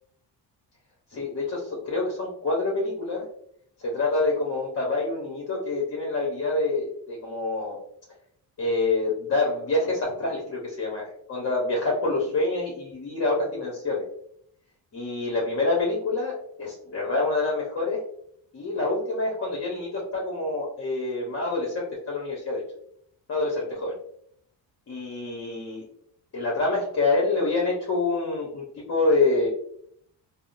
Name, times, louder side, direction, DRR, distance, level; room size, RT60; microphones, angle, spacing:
voice 1, 1.1-3.2 3.8-7.8 8.6-14.1 14.9-18.0 18.5-22.6 23.3-24.0 24.9-25.8 26.3-29.5, left 2 dB, 35° left, -3 dB, 0.9 m, -26 dB
3.4 x 2.1 x 2.5 m, 0.68 s
cardioid pair, 100°, 41 cm